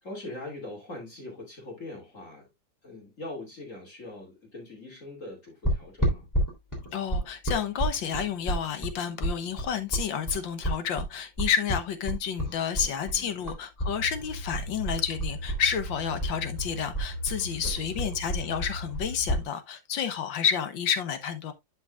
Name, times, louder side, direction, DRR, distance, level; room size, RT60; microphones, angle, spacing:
voice 1, 0.0-2.5 2.8-6.3 12.6-13.5 17.5-18.2, left 2 dB, 40° left, 2.9 m, -42 dB
sound 1, 5.6-13.9 14.2-15.9 16.2-19.4, right 1 dB, 10° left, 3.0 m, -30 dB
voice 2, 6.9-21.5, left 8 dB, 75° left, 1.8 m, -30 dB
sound 2, 13.8-19.5, equal, 70° right, 3.4 m, -38 dB
11.0 x 5.4 x 2.4 m
omnidirectional pair, 2.1 m